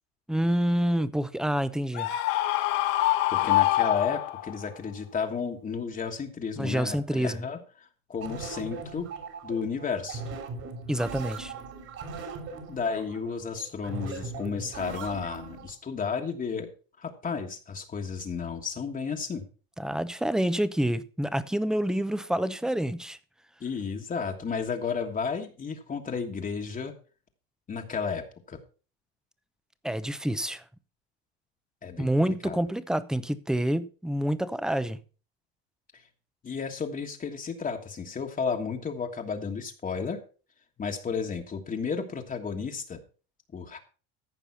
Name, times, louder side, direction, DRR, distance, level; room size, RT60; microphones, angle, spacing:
voice 1, 0.3-2.1 6.6-7.4 10.9-11.5 19.8-23.2 29.8-30.6 32.0-35.0, right 1 dB, ahead, 0.7 m, -27 dB
Screaming, 2.0-4.6, left 15 dB, 75° left, 1.7 m, -25 dB
voice 2, 3.3-9.1 9.4-10.2 12.7-16.7 17.0-19.4 23.6-26.9 27.7-28.6 31.8-32.6 35.9-36.0 36.4-40.2 40.8-43.0 43.5-43.8, left 5 dB, 25° left, 1.5 m, -33 dB
sound 1, 8.2-15.7, right 4 dB, 50° right, 3.2 m, -39 dB
14.5 x 5.4 x 5.7 m
supercardioid pair, 120°, 31 cm